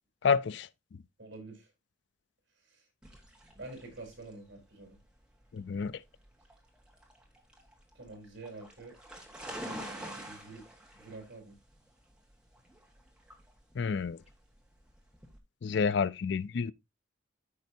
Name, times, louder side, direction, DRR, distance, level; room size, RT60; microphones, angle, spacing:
voice 1, 0.2-0.7 5.5-6.0 13.8-14.2 15.6-16.7, left 5 dB, 60° left, 0.4 m, -29 dB
voice 2, 1.2-1.7 2.6-2.9 3.5-5.0 7.9-9.0 9.6-10.6 10.9-11.6, right 2 dB, 65° right, 4.2 m, -47 dB
sound 1, 3.0-15.4, equal, 5° right, 1.5 m, -48 dB
13.5 x 5.3 x 2.7 m
head